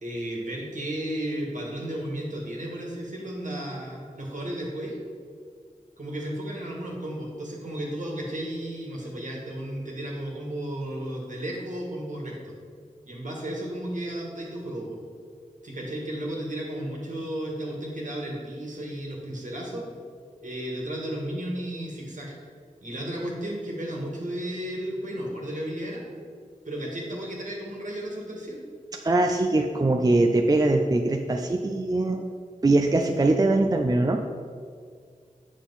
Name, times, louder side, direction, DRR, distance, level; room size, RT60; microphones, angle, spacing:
voice 1, 0.0-5.0 6.0-12.5 13.1-15.0 15.6-19.9 20.4-22.3 22.8-26.0 26.7-28.6, right 1 dB, 65° right, -2 dB, 1.8 m, -33 dB
voice 2, 29.0-32.3 32.6-34.2, right 2 dB, 25° right, 3 dB, 0.4 m, -22 dB
7.9 x 6.2 x 4.1 m, 2.1 s
wide cardioid pair, 75°, 14 cm